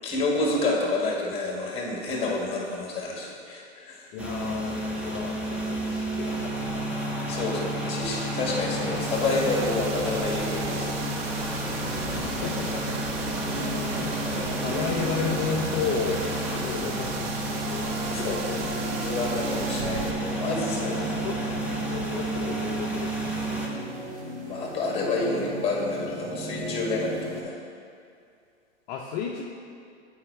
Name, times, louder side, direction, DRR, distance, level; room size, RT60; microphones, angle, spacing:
voice 1, 0.0-4.1 7.3-11.0 11.2-11.7 18.1-18.4 18.7-20.0 20.4-21.5 24.4-27.6, left 2 dB, 15° left, -2 dB, 1.7 m, -29 dB
voice 2, 4.1-7.0 12.4-13.0 13.5-17.9 18.2-18.7 20.1-20.2 21.2-21.4 21.9-23.5 28.9-29.4, left 6 dB, 40° left, 0 dB, 0.6 m, -33 dB
sound 1, 4.2-23.7, right 1 dB, 5° right, 0.9 m, -31 dB
sound 2, 8.3-27.4, right 1 dB, 85° right, 1.4 m, -37 dB
sound 3, 8.9-20.1, right 8 dB, 55° right, 0.6 m, -38 dB
8.5 x 4.7 x 4.6 m, 2.3 s
hypercardioid pair, 110°, 34 cm